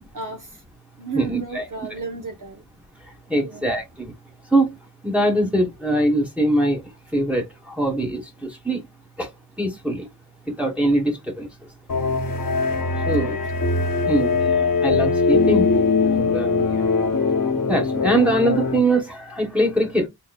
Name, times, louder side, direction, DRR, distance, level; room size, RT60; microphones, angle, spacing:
voice 1, 0.1-0.5 1.0-2.6 3.4-3.7 12.9-13.4, right 4 dB, 55° right, 0.9 m, -33 dB
voice 2, 1.1-1.7 3.3-4.1 4.5-4.7 5.0-6.8 7.1-8.8 9.2-9.3 9.6-10.1 10.6-11.5 13.1-13.3 14.1-14.5 14.8-15.7 16.0-16.7 17.7-20.1, right 1 dB, 5° right, 1.2 m, -22 dB
sound 1, 11.9-18.8, left 4 dB, 55° left, 1.1 m, -21 dB
3.8 x 3.7 x 2.3 m
wide cardioid pair, 90°, 39 cm